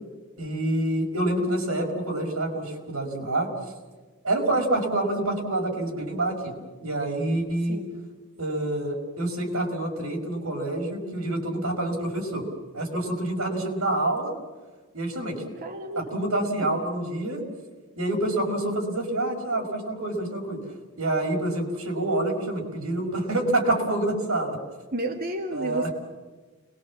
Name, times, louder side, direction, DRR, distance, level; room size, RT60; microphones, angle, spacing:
voice 1, 0.4-3.5 4.2-7.8 8.4-12.5 12.7-14.3 14.9-15.4 16.0-17.4 18.0-20.6 21.0-24.6 25.5-25.9, right 1 dB, 90° right, 1 dB, 5.4 m, -27 dB
voice 2, 15.5-16.1 24.9-25.9, right 2 dB, 45° right, 1 dB, 2.2 m, -31 dB
29.5 x 21.5 x 7.4 m, 1.3 s
head